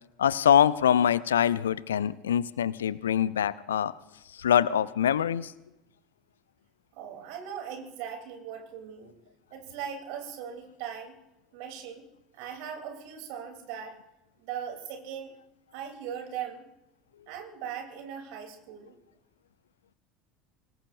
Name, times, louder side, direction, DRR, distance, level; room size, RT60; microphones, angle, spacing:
voice 1, 0.2-3.9 4.3-5.5, left 9 dB, 70° left, 19 dB, 0.5 m, -24 dB
voice 2, 6.9-9.1 9.5-11.1 11.5-12.0 12.3-14.0 14.4-15.4 15.7-16.7 17.3-18.9, right 8 dB, 55° right, 4 dB, 3.3 m, -39 dB
24.5 x 20.0 x 2.6 m, 0.92 s
figure-of-eight pair, 70°, 0 cm